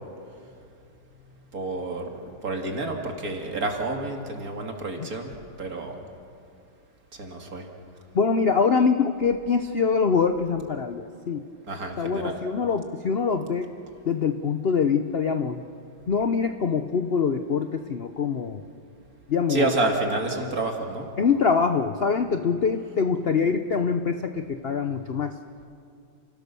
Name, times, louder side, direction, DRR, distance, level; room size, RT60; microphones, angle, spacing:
voice 1, 1.5-2.1 2.4-6.0 7.1-7.6 11.7-12.4 19.5-21.1, right 2 dB, 45° right, 2 dB, 2.7 m, -29 dB
voice 2, 8.1-11.4 12.0-13.7 14.1-15.6 16.1-18.6 19.3-19.7 21.2-25.3, left 5 dB, 65° left, 8 dB, 0.5 m, -24 dB
30.0 x 17.0 x 6.9 m, 2.4 s
omnidirectional pair, 2.1 m